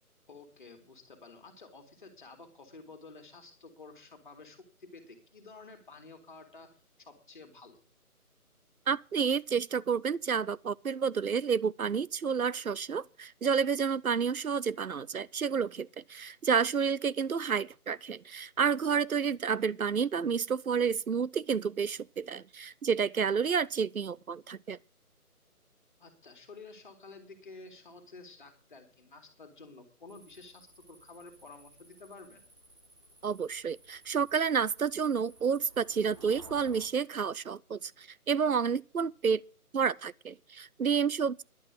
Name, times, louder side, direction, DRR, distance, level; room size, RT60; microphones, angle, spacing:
voice 1, 0.3-7.8 26.0-32.5, left 3 dB, 30° left, 2.5 m, -51 dB
voice 2, 8.9-24.8 33.2-39.4 39.7-41.4, right 6 dB, 70° right, 0.7 m, -30 dB
sound 1, 30.1-36.9, right 1 dB, 20° right, 1.3 m, -56 dB
11.5 x 8.2 x 7.6 m
figure-of-eight pair, 160°, 45 cm